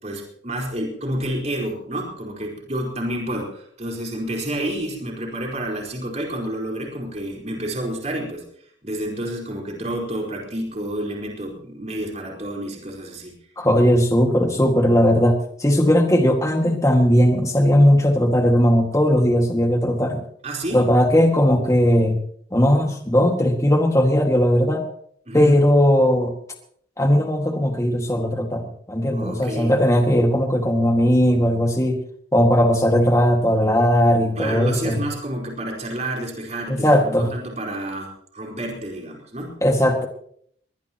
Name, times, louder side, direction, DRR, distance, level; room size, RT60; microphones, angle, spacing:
voice 1, 0.0-8.4 8.8-13.4 20.4-20.8 25.3-25.6 29.1-29.8 34.4-39.5, right 1 dB, 35° right, 0 dB, 4.6 m, -29 dB
voice 2, 13.6-20.2 20.7-22.2 22.5-24.9 25.3-26.3 27.0-32.0 32.3-35.0 36.7-37.3 39.6-40.1, equal, 15° left, 3 dB, 2.0 m, -18 dB
21.0 x 20.0 x 3.0 m, 0.65 s
head